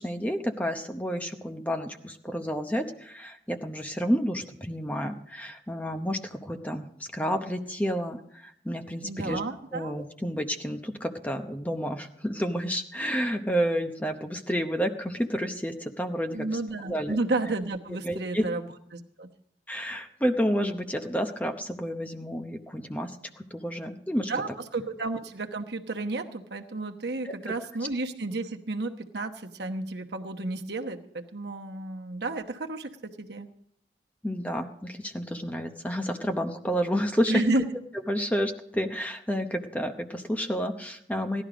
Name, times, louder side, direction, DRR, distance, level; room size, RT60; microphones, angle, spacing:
voice 1, 0.0-9.4 9.7-16.5 16.8-17.2 17.9-18.4 19.7-24.3 27.2-27.5 34.2-37.4 38.1-41.4, equal, 10° left, 5 dB, 0.8 m, -30 dB
voice 2, 9.0-9.9 16.3-19.3 24.3-33.5 37.3-37.6, right 2 dB, 70° right, 4 dB, 1.1 m, -32 dB
16.5 x 12.0 x 5.0 m, 0.69 s
head